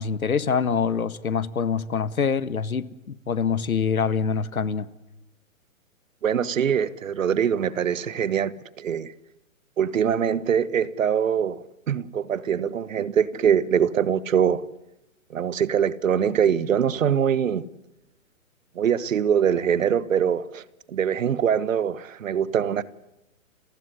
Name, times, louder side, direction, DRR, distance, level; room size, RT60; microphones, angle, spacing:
voice 1, 0.0-4.9, left 6 dB, 90° left, 1.7 m, -25 dB
voice 2, 6.2-9.1 9.8-11.6 11.9-14.6 15.3-17.6 18.8-20.6 20.9-22.8, right 8 dB, 70° right, 1.4 m, -23 dB
30.0 x 16.0 x 9.7 m
hypercardioid pair, 140°, 41 cm